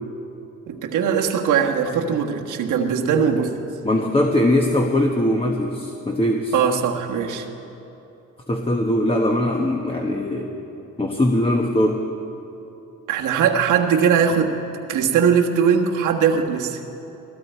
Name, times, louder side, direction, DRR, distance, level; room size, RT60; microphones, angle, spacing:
voice 1, 0.7-3.6 6.5-7.5 13.1-14.5 14.9-16.8, right 7 dB, 85° right, 2 dB, 1.4 m, -20 dB
voice 2, 3.8-6.5 8.5-10.5 11.0-12.1, left 1 dB, 20° left, 2 dB, 1.2 m, -21 dB
20.0 x 16.0 x 4.5 m, 2.9 s
cardioid pair, 90°, 30 cm